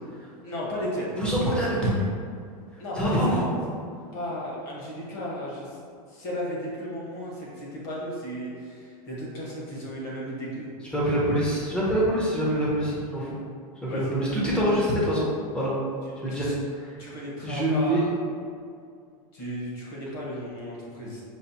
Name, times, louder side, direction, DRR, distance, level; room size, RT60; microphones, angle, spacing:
voice 1, 0.4-1.1 2.8-3.4 4.1-5.8 6.1-10.7 13.9-14.2 16.0-16.5 17.0-18.0 19.3-21.2, equal, 40° left, -5 dB, 1.2 m, -34 dB
voice 2, 1.2-2.0 2.7-3.5 10.9-13.4 13.8-15.3 15.5-15.7 16.2-17.1 17.4-18.1, equal, 5° left, -6 dB, 0.6 m, -25 dB
5.4 x 2.4 x 2.7 m, 2.2 s
supercardioid pair, 165°, 19 cm